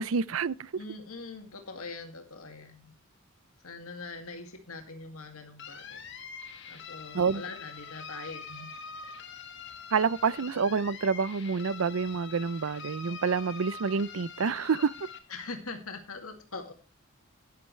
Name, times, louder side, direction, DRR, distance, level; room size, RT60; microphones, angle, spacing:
voice 1, 0.0-0.7 7.1-7.4 9.9-15.1, right 5 dB, 70° right, 0.5 m, -28 dB
voice 2, 0.7-2.9 3.6-6.0 6.7-8.7 15.3-16.7, left 3 dB, 80° left, 2.2 m, -42 dB
sound 1, 5.6-15.2, left 5 dB, 55° left, 1.8 m, -44 dB
12.0 x 10.5 x 3.2 m
head